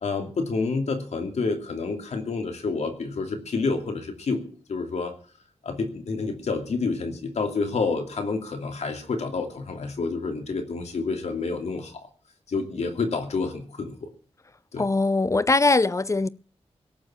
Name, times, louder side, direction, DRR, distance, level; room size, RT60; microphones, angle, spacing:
voice 1, 0.0-4.4 4.7-5.1 5.6-12.1 12.5-14.1 14.7-14.8, left 4 dB, 90° left, 2.7 m, -29 dB
voice 2, 14.8-16.3, left 3 dB, 30° left, 0.7 m, -21 dB
17.5 x 7.1 x 8.9 m
wide cardioid pair, 80°, 11 cm